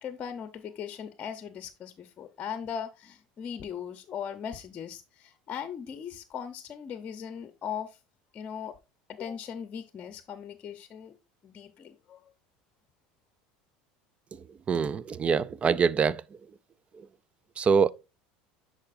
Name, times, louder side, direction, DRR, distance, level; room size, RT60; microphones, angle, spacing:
voice 1, 0.0-8.0 8.3-8.7 9.1-11.2 11.4-12.3, left 8 dB, 35° left, 0.7 m, -39 dB
voice 2, 14.7-16.2 17.6-17.9, right 6 dB, 30° right, 0.4 m, -24 dB
10.5 x 4.9 x 2.6 m
supercardioid pair, 100°, 4 cm